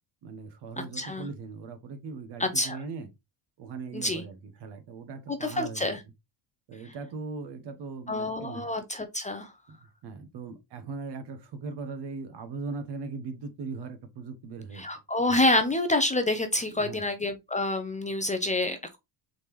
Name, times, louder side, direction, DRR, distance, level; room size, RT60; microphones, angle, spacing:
voice 1, 0.2-3.1 3.6-6.0 6.7-8.7 9.7-14.8 16.7-17.0, right 4 dB, 60° right, 1.1 m, -39 dB
voice 2, 1.0-1.3 2.4-2.8 3.9-4.2 5.3-6.0 8.1-9.5 14.8-19.0, left 2 dB, 15° left, 0.5 m, -27 dB
4.1 x 3.5 x 3.0 m
cardioid pair, 115°, 45 cm